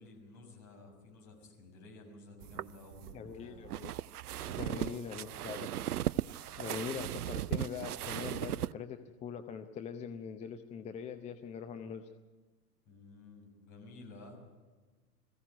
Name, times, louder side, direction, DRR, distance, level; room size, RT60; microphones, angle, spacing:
voice 1, 0.0-3.6 4.4-4.9 12.8-14.4, left 3 dB, 35° left, 2 dB, 6.7 m, -53 dB
sound 1, 2.4-8.7, right 12 dB, 70° right, 0.6 m, -37 dB
voice 2, 3.1-3.9 4.6-5.7 6.6-12.1, left 7 dB, 15° left, 7 dB, 0.6 m, -42 dB
21.5 x 15.5 x 9.3 m, 1.3 s
figure-of-eight pair, 95°, 48 cm